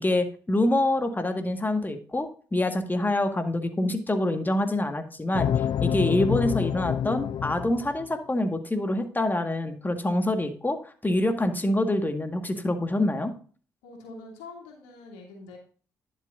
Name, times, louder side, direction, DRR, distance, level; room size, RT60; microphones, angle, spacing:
voice 1, 0.0-5.5 5.8-13.3, left 1 dB, 20° left, 6 dB, 1.8 m, -26 dB
sound 1, 5.3-8.1, left 9 dB, 55° left, 0.3 m, -27 dB
voice 2, 13.8-15.6, left 3 dB, 85° left, 0 dB, 2.8 m, -44 dB
11.0 x 7.3 x 2.6 m, 0.40 s
hypercardioid pair, 45°, 9 cm